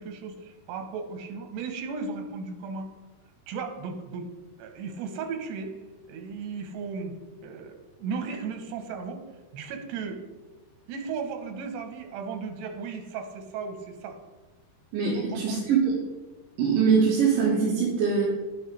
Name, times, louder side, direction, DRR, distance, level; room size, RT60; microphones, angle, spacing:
voice 1, 0.0-2.9 3.5-4.3 4.6-5.7 6.1-7.2 7.4-9.2 9.5-10.2 10.9-14.2 15.2-15.6, right 5 dB, 90° right, 5 dB, 3.2 m, -35 dB
voice 2, 14.9-15.9 16.6-18.2, right 6 dB, 65° right, -5 dB, 3.0 m, -23 dB
10.5 x 9.6 x 3.3 m, 1.2 s
omnidirectional pair, 4.7 m